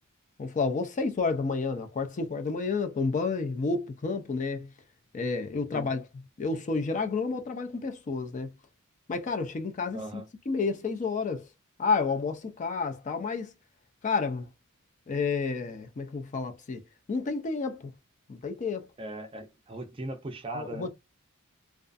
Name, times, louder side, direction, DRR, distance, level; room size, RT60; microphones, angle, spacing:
voice 1, 0.4-4.7 5.1-6.0 6.4-8.5 9.1-11.4 11.8-13.5 14.0-14.5 15.1-16.8 17.1-17.8 18.3-18.9 20.5-20.9, left 4 dB, 35° left, 0.4 m, -30 dB
voice 2, 9.9-10.3 19.0-20.9, right 2 dB, 25° right, 0.5 m, -38 dB
2.4 x 2.3 x 2.4 m
head